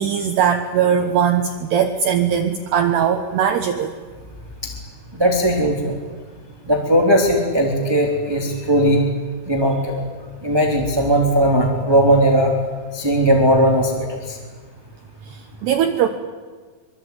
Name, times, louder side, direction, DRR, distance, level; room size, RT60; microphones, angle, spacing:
voice 1, 0.0-3.9 15.3-16.1, right 8 dB, 65° right, 6 dB, 3.0 m, -20 dB
voice 2, 5.1-5.9 6.7-9.0 9.5-10.0 10.4-12.5 12.9-14.4, equal, 5° right, 1 dB, 2.4 m, -18 dB
25.5 x 24.0 x 9.6 m, 1.5 s
omnidirectional pair, 5.8 m